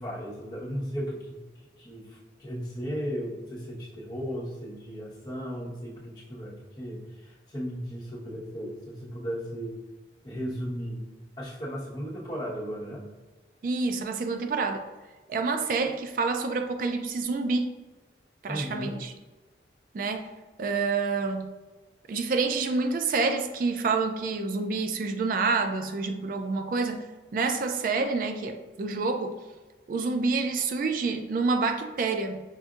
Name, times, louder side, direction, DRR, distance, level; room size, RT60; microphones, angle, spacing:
voice 1, 0.0-1.4 1.8-9.8 10.2-11.0 11.4-13.0 18.5-19.0, equal, 25° left, -8 dB, 1.1 m, -35 dB
voice 2, 13.6-14.9 15.3-17.7 18.4-19.1 19.9-20.3 20.6-21.5 22.1-27.1 27.3-29.4 29.9-32.4, right 4 dB, 50° right, 7 dB, 0.3 m, -28 dB
5.7 x 2.6 x 2.4 m, 1.2 s
head